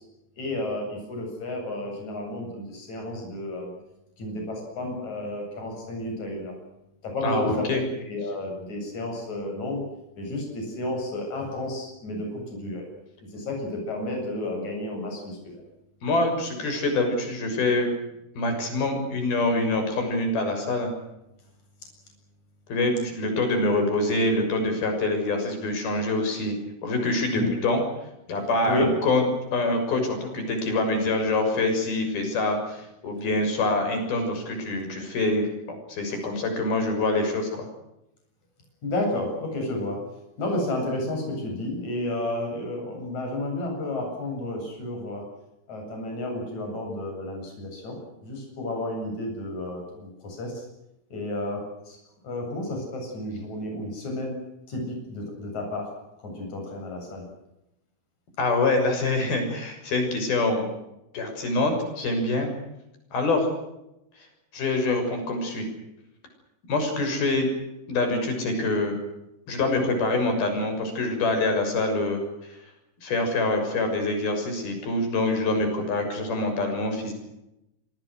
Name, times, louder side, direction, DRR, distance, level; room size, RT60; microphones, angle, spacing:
voice 1, 0.4-3.7 4.2-6.5 7.0-9.8 10.2-12.8 13.2-15.6 27.3-27.5 28.7-28.9 36.1-36.2 38.8-40.0 40.4-45.3 45.7-48.0 48.2-50.6 51.1-52.0 52.2-54.4 54.7-55.9 56.2-57.3, left 1 dB, 45° left, 1 dB, 9.3 m, -31 dB
voice 2, 7.2-7.8 16.0-17.9 18.3-20.9 22.7-26.6 26.8-27.8 28.3-29.2 29.5-37.7 58.4-60.7 61.1-62.5 63.1-63.5 64.5-65.7 66.7-67.5 67.9-69.0 69.5-72.6 73.0-77.1, left 2 dB, 70° left, 5 dB, 8.3 m, -25 dB
26.5 x 25.0 x 6.4 m, 0.88 s
omnidirectional pair, 4.5 m